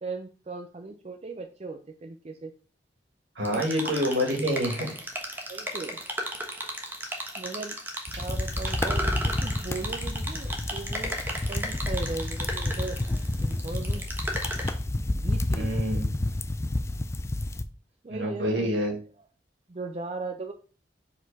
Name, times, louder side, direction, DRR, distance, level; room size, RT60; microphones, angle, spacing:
voice 1, 0.0-2.5 3.5-3.6 5.5-6.0 7.4-7.8 8.2-11.2 11.5-13.0 13.4-14.0 15.1-16.1 18.0-18.7 19.7-20.5, right 3 dB, 35° right, 5 dB, 0.5 m, -37 dB
sound 1, 3.4-14.7, right 1 dB, 10° right, 1.1 m, -35 dB
voice 2, 3.4-4.9 15.6-16.1 18.1-18.9, equal, 75° right, 1 dB, 2.0 m, -27 dB
sound 2, 8.1-17.6, left 1 dB, 15° left, 0.3 m, -30 dB
5.1 x 4.1 x 5.3 m, 0.38 s
head